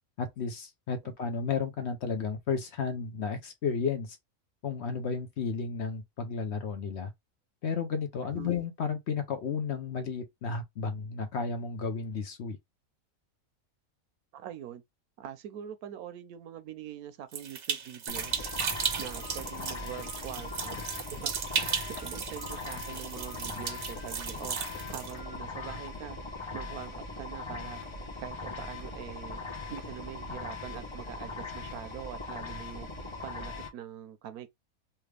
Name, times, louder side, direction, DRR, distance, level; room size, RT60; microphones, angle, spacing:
voice 1, 0.2-4.2 4.6-7.1 7.6-12.6, left 5 dB, 60° left, 0.8 m, -33 dB
voice 2, 8.2-8.5 14.3-14.8 15.2-18.5 19.0-20.8 21.1-21.3 21.9-24.6 24.9-26.2 26.5-27.8 28.2-29.4 29.7-32.9 33.2-34.5, right 10 dB, 85° right, 1.1 m, -43 dB
sound 1, 17.3-25.1, right 7 dB, 70° right, 1.4 m, -35 dB
sound 2, 18.1-33.7, left 3 dB, 30° left, 0.5 m, -40 dB
sound 3, 18.4-21.3 21.6-24.5 24.7-26.1, left 4 dB, 80° left, 1.3 m, -50 dB
3.4 x 2.4 x 3.2 m
omnidirectional pair, 1.5 m